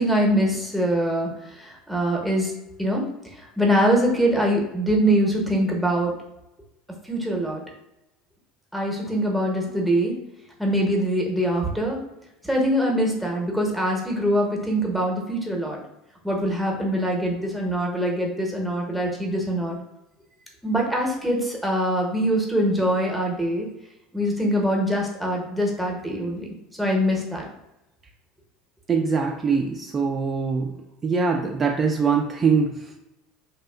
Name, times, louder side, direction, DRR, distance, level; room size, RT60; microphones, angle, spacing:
voice 1, 0.0-2.5 2.8-3.1 3.3-6.1 7.0-7.6 8.7-10.1 10.6-12.0 12.4-15.8 16.2-19.8 20.6-23.7 24.1-26.5 26.8-27.5, equal, ahead, -1 dB, 0.8 m, -23 dB
voice 2, 28.9-30.7 31.0-33.0, right 5 dB, 30° right, 1 dB, 0.3 m, -23 dB
2.7 x 2.3 x 2.2 m, 0.91 s
hypercardioid pair, 85°, 0 cm